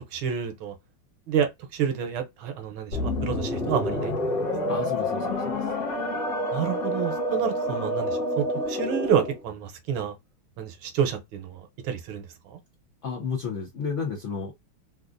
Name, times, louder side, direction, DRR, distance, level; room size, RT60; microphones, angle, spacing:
voice 1, 0.1-0.7 1.3-4.1 6.5-10.1 10.6-12.2, right 8 dB, 75° right, 1.5 m, -29 dB
sound 1, 2.9-9.4, left 1 dB, 50° left, 2.0 m, -28 dB
voice 2, 4.7-5.7 13.0-14.5, left 5 dB, 80° left, 0.6 m, -32 dB
3.9 x 2.4 x 2.5 m
omnidirectional pair, 2.4 m